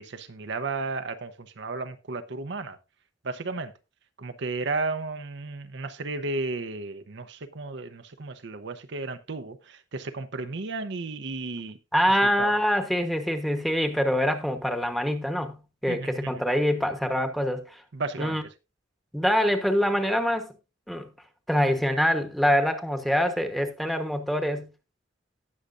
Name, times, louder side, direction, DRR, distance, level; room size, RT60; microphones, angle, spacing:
voice 1, 0.0-2.8 3.2-3.7 4.2-11.8 12.4-12.5 15.9-16.3 17.9-18.4, right 3 dB, 65° right, 0.7 m, -33 dB
voice 2, 11.9-17.8 18.2-18.4 19.1-20.5 20.9-21.1 21.5-24.7, equal, ahead, 1.1 m, -25 dB
18.0 x 6.5 x 2.5 m
head